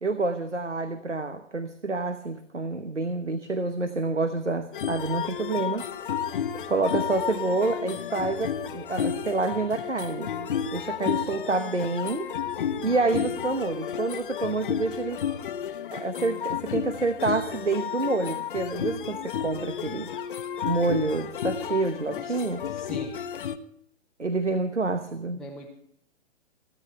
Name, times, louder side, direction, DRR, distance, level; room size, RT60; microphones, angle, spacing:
voice 1, 0.0-6.3 6.7-10.3 10.7-12.3 12.8-15.2 15.9-20.1 20.6-22.6 24.2-25.4, right 3 dB, 90° right, 11 dB, 1.1 m, -28 dB
sound 1, 4.7-23.6, left 8 dB, 45° left, 0.9 m, -32 dB
voice 2, 22.1-23.2 25.4-25.7, left 2 dB, ahead, -2 dB, 0.8 m, -42 dB
29.5 x 10.0 x 3.3 m, 0.70 s
figure-of-eight pair, 125°, 35 cm